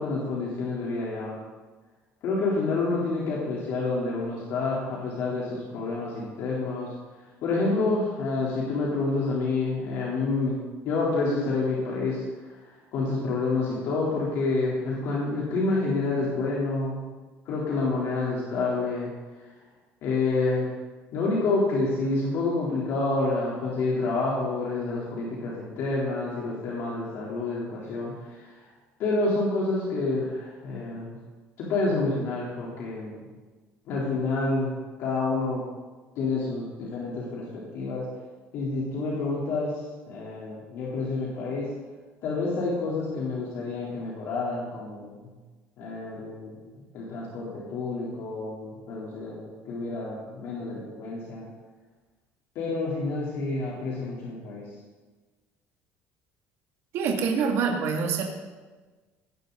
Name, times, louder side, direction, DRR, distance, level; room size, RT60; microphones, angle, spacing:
voice 1, 0.0-1.3 2.2-6.9 7.4-10.6 10.8-12.2 12.9-17.0 17.5-19.1 20.0-20.7 21.1-28.1 29.0-31.2 31.6-33.2 33.9-34.7 35.0-35.6 36.2-38.1 38.5-39.7 40.1-41.7 42.2-45.1 45.8-46.5 46.9-51.5 52.6-54.7, left 3 dB, 55° left, -5 dB, 3.7 m, -28 dB
voice 2, 56.9-58.2, right 5 dB, 55° right, 0 dB, 2.6 m, -25 dB
19.0 x 14.0 x 4.1 m, 1.3 s
cardioid pair, 165°, 5 cm